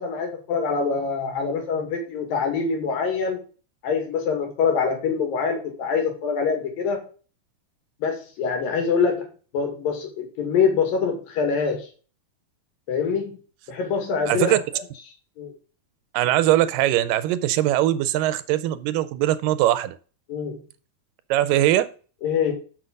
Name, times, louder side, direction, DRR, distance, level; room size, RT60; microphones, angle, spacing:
voice 1, 0.0-3.4 3.8-7.0 8.0-9.3 9.5-11.9 12.9-13.4 13.7-14.8 15.4-15.5 20.3-20.6 22.2-22.5, left 5 dB, 85° left, 2 dB, 3.9 m, -24 dB
voice 2, 14.3-14.6 16.1-20.0 21.3-21.9, right 13 dB, 90° right, 14 dB, 2.3 m, -21 dB
6.3 x 6.3 x 5.3 m, 0.38 s
omnidirectional pair, 3.9 m